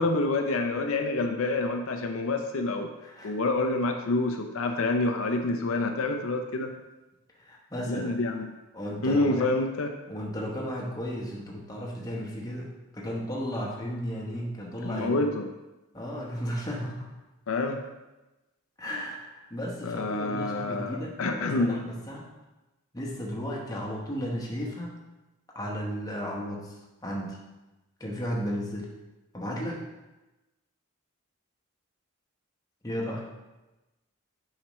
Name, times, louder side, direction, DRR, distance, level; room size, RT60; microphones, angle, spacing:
voice 1, 0.0-2.9 3.2-6.7 7.8-8.5 9.0-9.9 14.8-15.5 17.5-17.8 19.8-21.8, left 2 dB, 70° left, 4 dB, 0.5 m, -27 dB
voice 2, 3.0-3.3 7.4-8.1 8.7-9.6 10.1-15.2 15.9-17.1 18.8-22.3 22.9-25.0 25.5-27.4 28.0-28.9 29.3-29.9 32.8-33.3, equal, 15° left, -3 dB, 1.0 m, -34 dB
7.3 x 4.9 x 3.1 m, 1.1 s
head